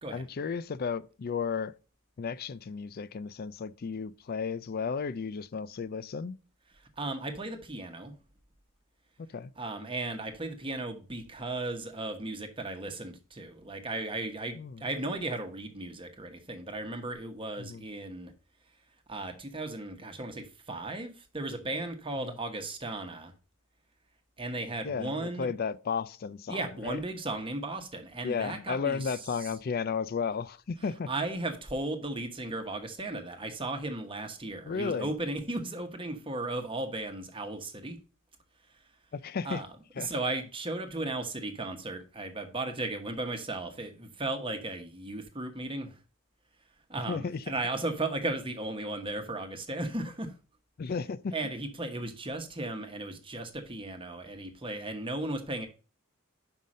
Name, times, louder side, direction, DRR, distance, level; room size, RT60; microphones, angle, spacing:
voice 1, 0.1-1.7 2.2-6.4 9.2-9.5 14.6-14.8 17.6-17.8 22.2-22.3 24.8-27.0 28.2-31.1 34.7-35.1 39.1-39.6 40.0-40.1 47.1-47.4 50.8-51.4, left 5 dB, 45° left, 0.4 m, -34 dB
voice 2, 7.0-8.1 9.6-18.3 19.1-23.3 24.4-25.5 26.5-29.1 31.1-38.0 39.4-39.7 40.0-46.0 46.9-50.3 51.3-55.7, right 2 dB, 25° right, 1.1 m, -36 dB
5.7 x 5.4 x 6.3 m
head